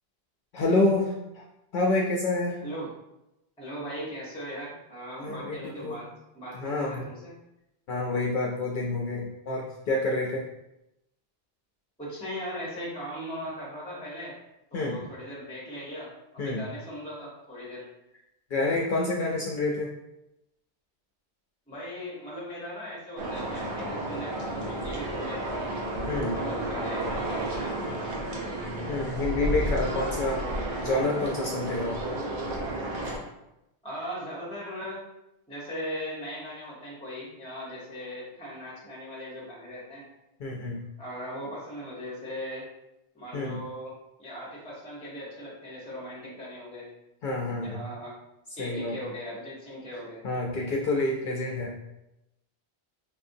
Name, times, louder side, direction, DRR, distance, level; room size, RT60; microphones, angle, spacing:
voice 1, 0.5-1.4 1.7-2.6 5.2-6.0 6.5-7.1 7.9-10.5 14.7-15.0 16.4-16.6 18.5-19.9 26.1-26.4 28.9-30.4 30.8-32.0 40.4-40.8 43.3-43.6 47.2-47.8 48.6-49.0 50.2-51.7, left 2 dB, 60° left, -2 dB, 0.6 m, -28 dB
voice 2, 2.6-2.9 3.6-6.1 6.3-7.3 12.0-14.3 14.7-17.8 21.7-25.8 26.3-28.4 33.8-35.1 35.5-40.0 41.0-42.7 43.1-46.9 47.6-48.1 48.6-50.2, equal, 5° left, -6 dB, 0.8 m, -39 dB
sound 1, 23.2-33.2, right 1 dB, 85° right, 1.0 m, -32 dB
4.9 x 2.5 x 2.6 m, 0.90 s
omnidirectional pair, 1.1 m